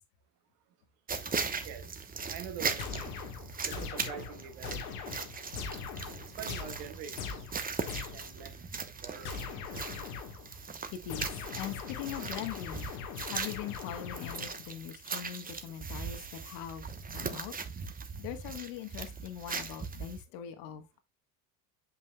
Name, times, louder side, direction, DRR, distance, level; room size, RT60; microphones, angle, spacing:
sound 1, 1.1-20.2, right 5 dB, 20° right, 0.9 m, -39 dB
voice 1, 2.3-3.1 3.6-4.8 6.4-7.4 8.1-9.9, right 8 dB, 75° right, 1.5 m, -45 dB
sound 2, 2.8-8.4 9.2-10.5 11.1-14.8, left 6 dB, 85° left, 1.5 m, -41 dB
voice 2, 10.9-12.9 13.3-16.9 17.1-17.5 18.2-21.0, left 10 dB, 70° left, 1.3 m, -41 dB
8.2 x 5.4 x 2.2 m
supercardioid pair, 85°, 43 cm